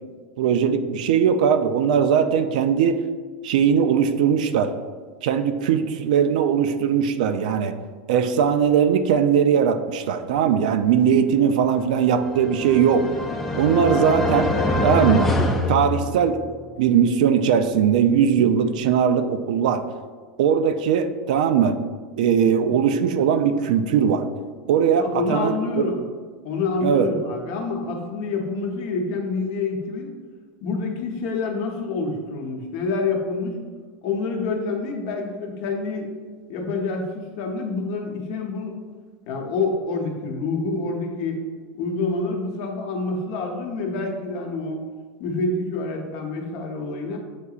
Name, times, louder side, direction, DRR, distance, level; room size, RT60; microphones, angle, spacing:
voice 1, 0.4-3.0 3.4-4.7 5.2-7.7 8.1-13.1 13.6-14.5 14.8-15.3 15.7-16.4 16.8-19.8 20.4-21.8 22.2-24.3 24.7-25.9 26.8-27.1, right 7 dB, 75° right, 9 dB, 0.4 m, -20 dB
sound 1, 12.1-16.6, left 2 dB, 5° left, 0.3 m, -24 dB
voice 2, 22.4-22.7 25.0-26.0 26.4-30.1 30.6-33.6 34.0-36.1 36.5-38.7 39.3-41.4 41.7-44.8 45.2-47.2, left 3 dB, 45° left, 2 dB, 0.7 m, -27 dB
7.9 x 2.8 x 2.4 m, 1.6 s
supercardioid pair, 175°, 4 cm